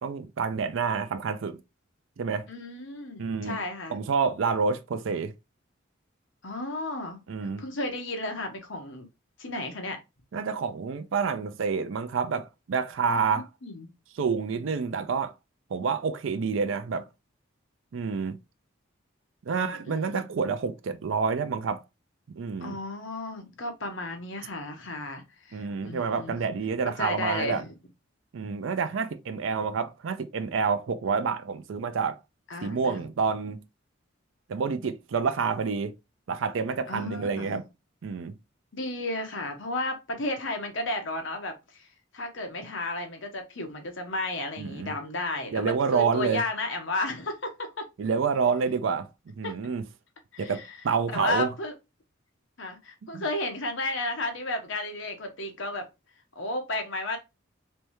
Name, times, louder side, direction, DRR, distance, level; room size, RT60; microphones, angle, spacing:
voice 1, 0.0-1.6 2.2-2.5 3.2-3.6 3.9-5.3 7.3-7.6 10.3-13.5 14.2-15.3 15.7-17.1 17.9-18.4 19.5-21.8 22.3-22.8 25.5-27.6 28.3-32.2 32.6-33.6 34.5-35.9 36.3-37.6 38.0-38.3 44.6-45.0 45.5-46.4 48.0-49.1 49.4-49.8 50.4-51.5 53.1-53.2, right 5 dB, 75° right, 0.4 m, -28 dB
voice 2, 2.5-4.0 6.4-7.2 7.6-9.1 9.4-10.0 13.1-13.9 19.5-20.2 22.6-26.4 26.8-27.7 32.5-33.1 36.9-37.6 38.7-41.9 42.1-47.8 49.4-49.5 50.3-50.8 51.1-51.7 52.6-55.9 56.3-57.2, left 2 dB, 70° left, 1.0 m, -33 dB
3.4 x 3.2 x 3.0 m
head